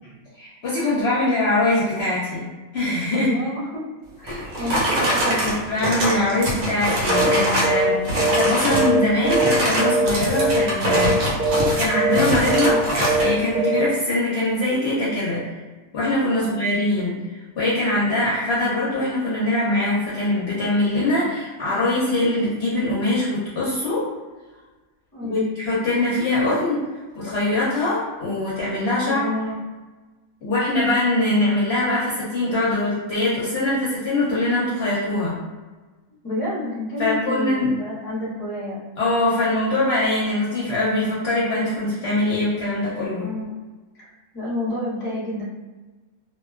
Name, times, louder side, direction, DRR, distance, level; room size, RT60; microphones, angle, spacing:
voice 1, 0.4-3.3 4.2-4.7 5.4-11.2 11.8-12.7 13.2-15.4 15.9-24.0 25.2-26.8 27.2-29.3 30.4-35.4 37.0-37.7 39.0-43.3, left 1 dB, 55° left, -8 dB, 0.8 m, -23 dB
voice 2, 3.1-3.8 4.2-5.6 12.5-12.9 16.4-16.5 25.1-25.5 29.0-29.6 36.2-38.8 43.2-43.5 43.9-45.4, left 1 dB, 20° left, -8 dB, 0.7 m, -29 dB
sound 1, 4.3-7.8 8.0-8.9 9.2-13.3, equal, 70° right, 1.1 m, -23 dB
sound 2, 7.1-7.4 7.6-7.9 8.2-9.5 9.8-10.1 10.3-10.6 10.9-11.1 11.4-11.7 11.9-12.2 12.5-12.7 13.0-13.3 13.5-13.8, right 2 dB, 35° right, 0.9 m, -21 dB
2.4 x 2.3 x 2.3 m, 1.3 s
omnidirectional pair, 1.5 m